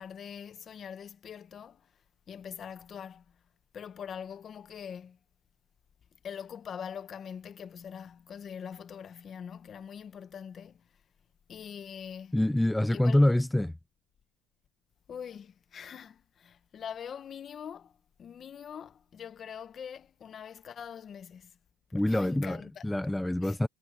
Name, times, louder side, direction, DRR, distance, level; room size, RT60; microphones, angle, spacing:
voice 1, 0.0-1.9 2.3-3.4 3.7-5.2 6.2-10.9 11.5-12.4 12.9-13.3 15.1-21.6 21.9-23.0 23.4-23.6, left 8 dB, 30° left, 1.1 m, -43 dB
voice 2, 12.3-13.7 21.9-23.7, left 1 dB, 5° left, 0.6 m, -26 dB
cardioid pair, 155°, 0 cm